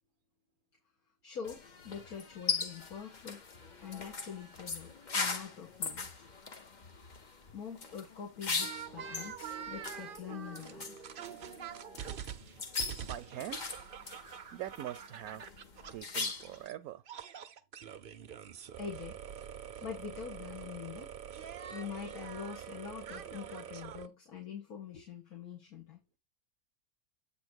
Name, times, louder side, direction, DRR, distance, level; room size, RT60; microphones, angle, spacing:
voice 1, 1.2-3.4 3.8-6.3 7.0-7.1 7.5-11.0 12.9-13.0 18.8-19.2 19.8-21.1 21.7-26.0, left 7 dB, 70° left, 2.1 m, -44 dB
sound 1, 1.4-16.6, left 4 dB, 40° left, 0.8 m, -40 dB
sound 2, 8.6-16.7 17.1-24.1, right 8 dB, 55° right, 0.6 m, -45 dB
voice 2, 13.0-13.6 14.5-15.4 15.9-17.0, right 12 dB, 75° right, 1.0 m, -43 dB
8.4 x 2.9 x 6.2 m
omnidirectional pair, 1.6 m